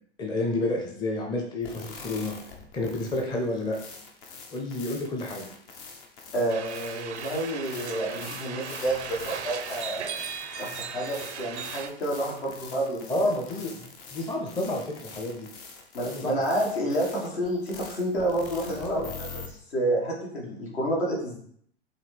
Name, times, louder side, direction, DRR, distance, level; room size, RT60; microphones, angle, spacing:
voice 1, 0.2-2.3 2.7-3.8 4.5-5.5 13.1-15.5 16.0-16.4 18.7-19.1, left 2 dB, 15° left, 1 dB, 0.6 m, -30 dB
sound 1, 1.6-19.5, left 5 dB, 55° left, 0.9 m, -44 dB
voice 2, 6.3-10.2 10.5-13.3 15.9-21.4, right 1 dB, 70° left, -3 dB, 1.7 m, -29 dB
sound 2, 6.5-11.9, right 7 dB, 80° right, 0.5 m, -37 dB
4.8 x 2.8 x 3.3 m, 0.65 s
figure-of-eight pair, 90°, 33 cm